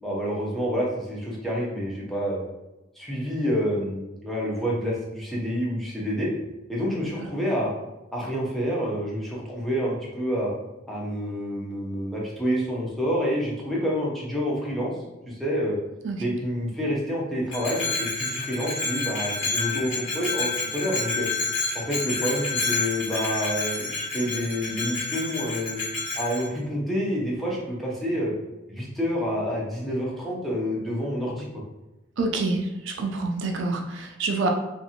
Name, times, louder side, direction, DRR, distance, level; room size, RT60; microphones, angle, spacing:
voice 1, 0.0-2.4 3.0-6.3 6.7-7.7 8.1-10.5 10.9-14.9 15.3-15.8 16.2-21.3 21.7-25.8 26.2-28.3 28.7-31.5, equal, ahead, -5 dB, 0.6 m, -28 dB
Bell, 17.5-26.5, left 3 dB, 80° left, 1.2 m, -29 dB
voice 2, 32.2-34.5, right 3 dB, 75° right, 2 dB, 0.4 m, -27 dB
2.6 x 2.5 x 2.7 m, 0.98 s
head